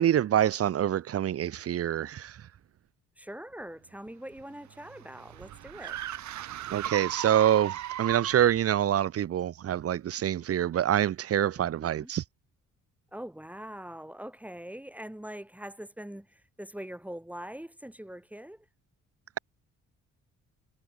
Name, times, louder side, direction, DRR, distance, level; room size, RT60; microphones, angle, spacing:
voice 1, 0.0-2.3 6.7-12.2, right 11 dB, 50° right, 0.8 m, -26 dB
voice 2, 3.2-6.0 11.6-12.1 13.1-18.6, right 1 dB, 5° right, 4.6 m, -43 dB
sound 1, 4.1-8.6, right 12 dB, 70° right, 1.3 m, -37 dB
cardioid pair, 90°, 30 cm